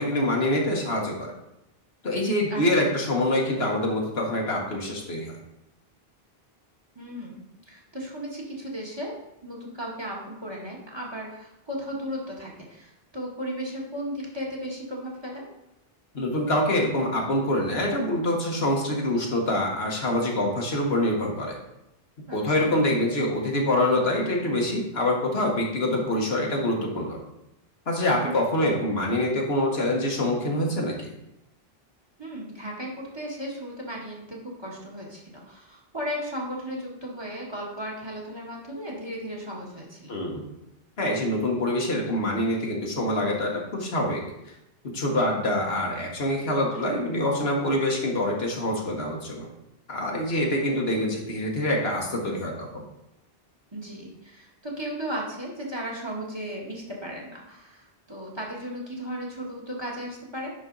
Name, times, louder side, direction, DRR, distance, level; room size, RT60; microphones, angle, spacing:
voice 1, 0.0-1.3 2.0-5.3 16.1-21.6 22.3-27.2 27.9-31.1 40.1-40.4 41.0-44.2 44.9-49.5 49.9-52.8, left 1 dB, 80° left, -1 dB, 1.7 m, -25 dB
voice 2, 6.9-15.4 22.3-22.7 28.2-28.5 32.2-40.2 46.7-47.0 53.7-60.5, equal, 25° right, -2 dB, 1.7 m, -35 dB
10.5 x 4.3 x 3.9 m, 0.87 s
omnidirectional pair, 1.0 m